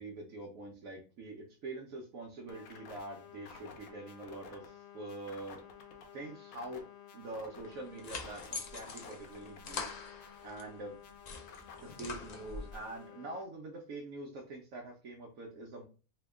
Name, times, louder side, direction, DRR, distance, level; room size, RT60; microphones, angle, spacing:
voice 1, 0.0-5.6 6.1-6.9 7.1-10.0 10.4-10.9 11.8-15.8, right 2 dB, 75° right, 0 dB, 1.1 m, -45 dB
sound 1, 2.5-13.4, left 7 dB, 90° left, 1.1 m, -52 dB
sound 2, 7.6-10.7 11.1-12.8, left 4 dB, 60° left, 0.4 m, -44 dB
2.9 x 2.8 x 3.4 m, 0.36 s
omnidirectional pair, 1.4 m